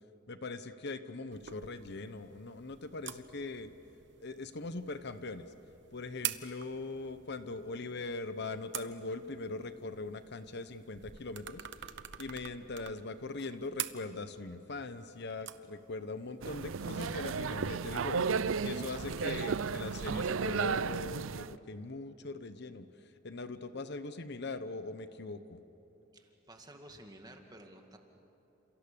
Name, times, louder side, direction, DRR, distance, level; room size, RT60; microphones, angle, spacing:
voice 1, 0.3-3.7 4.2-5.5 5.9-11.9 12.2-18.3 18.6-25.6, left 3 dB, 60° left, 11 dB, 1.0 m, -41 dB
sound 1, 1.3-19.2, right 11 dB, 65° right, 1.0 m, -47 dB
sound 2, 16.4-21.5, right 5 dB, 80° right, 0.5 m, -34 dB
voice 2, 26.1-28.0, right 1 dB, 20° right, 3 dB, 2.2 m, -53 dB
29.5 x 28.0 x 7.0 m, 2.9 s
head